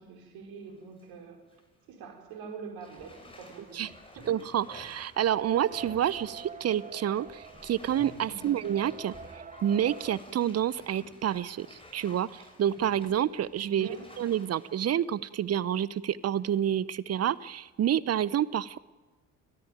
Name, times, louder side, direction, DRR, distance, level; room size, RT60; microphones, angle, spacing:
voice 1, 0.0-1.6 1.9-4.3 8.3-8.6 13.7-14.2, right 5 dB, 65° right, 4 dB, 4.6 m, -45 dB
Bathtub (filling or washing), 0.6-1.1 1.5-1.6 2.8-15.9 16.3-16.4, left 1 dB, 15° left, 6.8 m, -52 dB
voice 2, 4.3-13.9 14.2-18.8, right 10 dB, 40° right, 20 dB, 0.8 m, -29 dB
sound 1, 5.2-10.2, right 6 dB, 20° right, 1.1 m, -45 dB
29.5 x 14.0 x 9.2 m, 1.3 s
figure-of-eight pair, 50°, 38 cm